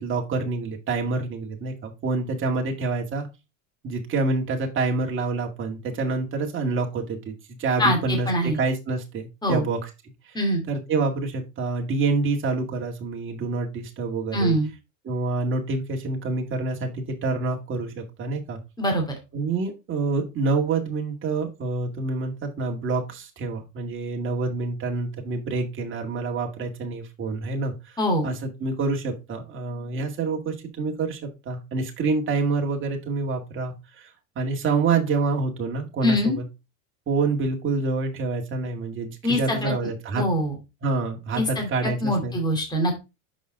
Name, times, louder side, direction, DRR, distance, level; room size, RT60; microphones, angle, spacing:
voice 1, 0.0-3.3 3.8-7.3 7.6-9.9 10.3-10.4 10.7-14.6 15.0-18.6 19.3-27.7 28.2-31.2 31.5-34.1 34.4-36.5 37.1-40.3 40.8-42.3, right 3 dB, 30° right, 2 dB, 2.1 m, -27 dB
voice 2, 7.8-8.6 9.4-9.7 10.3-10.6 14.3-14.7 18.8-19.1 28.0-28.3 36.0-36.4 39.2-39.7 40.1-40.5 41.4-41.7 42.0-42.9, equal, 10° left, 2 dB, 2.5 m, -23 dB
6.4 x 5.3 x 3.8 m, 0.26 s
supercardioid pair, 120°, 40 cm